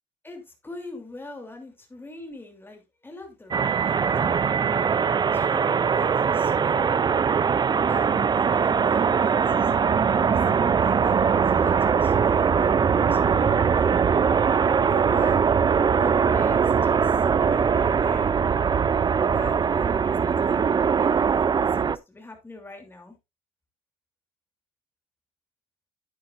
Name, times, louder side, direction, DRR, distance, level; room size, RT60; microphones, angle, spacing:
voice 1, 0.2-7.0 7.9-14.1 14.7-15.4 15.7-18.4 19.2-23.2, left 2 dB, 10° left, 2.9 m, -43 dB
sound 1, 3.5-22.0, right 6 dB, 25° right, 0.4 m, -21 dB
9.8 x 9.5 x 2.5 m
cardioid pair, 110°, 17 cm